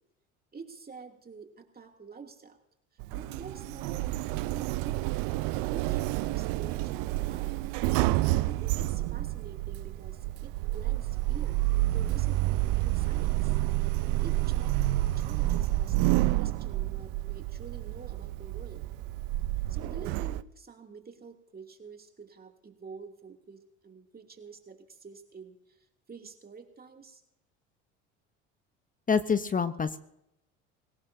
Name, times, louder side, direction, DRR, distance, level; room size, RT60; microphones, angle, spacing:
voice 1, 0.5-2.6 3.1-5.1 5.7-7.6 8.4-11.6 11.9-13.6 14.1-18.9 19.7-27.2, right 5 dB, 25° right, 3 dB, 2.7 m, -48 dB
Sliding door, 3.0-20.4, right 17 dB, 65° right, 0.7 m, -29 dB
voice 2, 29.1-30.0, left 6 dB, 20° left, 13 dB, 0.9 m, -26 dB
22.0 x 18.0 x 2.8 m, 0.81 s
hypercardioid pair, 75°, 37 cm